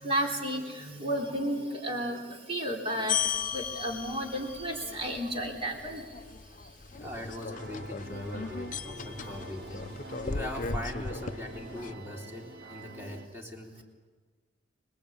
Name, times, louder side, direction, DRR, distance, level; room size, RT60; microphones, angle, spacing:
voice 1, 0.0-2.2 2.5-3.2 3.5-6.0, equal, 30° right, 2 dB, 3.8 m, -32 dB
sound 1, 3.1-11.9, left 6 dB, 45° left, 0.8 m, -37 dB
voice 2, 6.9-9.9 10.2-13.8, left 1 dB, 10° right, 0 dB, 3.4 m, -41 dB
sound 2, 7.5-13.3, right 1 dB, 55° right, 2.3 m, -46 dB
26.5 x 20.5 x 8.7 m, 1.4 s
head